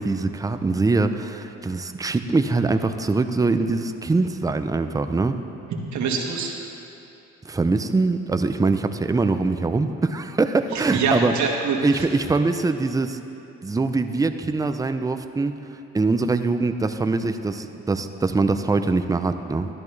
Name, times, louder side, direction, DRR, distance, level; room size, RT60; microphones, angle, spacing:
voice 1, 0.0-5.4 7.4-11.3 11.8-13.2 13.6-15.6 15.9-19.7, right 3 dB, 10° right, 9 dB, 0.4 m, -23 dB
voice 2, 5.9-6.6 10.7-12.1, right 5 dB, 70° right, 0 dB, 1.5 m, -25 dB
13.0 x 10.5 x 3.2 m, 2.8 s
cardioid pair, 90°, 30 cm